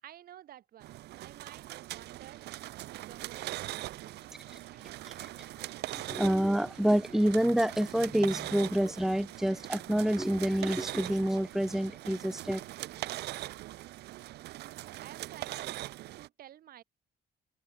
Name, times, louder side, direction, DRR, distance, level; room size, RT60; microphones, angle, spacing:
voice 1, 0.0-2.6 2.9-4.5 15.0-15.8 16.2-16.8, right 11 dB, 60° right, 5.2 m, -52 dB
sound 1, 0.8-16.3, right 16 dB, 80° right, 2.4 m, -41 dB
voice 2, 6.1-12.6, equal, ahead, 1.4 m, -28 dB
cardioid pair, 110°, 17 cm